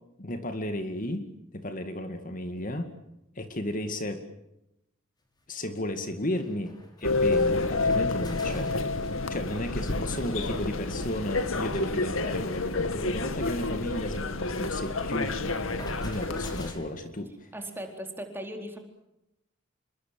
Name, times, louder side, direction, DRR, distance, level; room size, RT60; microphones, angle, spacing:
voice 1, 0.2-1.2 1.5-2.9 3.4-4.2 5.5-8.9 9.1-15.3 16.0-17.5, left 1 dB, 40° left, 8 dB, 2.3 m, -34 dB
sound 1, 5.2-5.3 5.8-5.9 6.1-9.6 9.9-11.9 12.2-12.4 12.6-12.7 13.0-15.0 15.3-18.0, left 1 dB, 20° left, 5.4 m, -48 dB
sound 2, 7.0-16.7, left 3 dB, 80° left, 2.4 m, -29 dB
voice 2, 17.5-18.8, right 1 dB, 10° right, 4 dB, 4.1 m, -38 dB
28.0 x 23.5 x 7.7 m, 0.86 s
head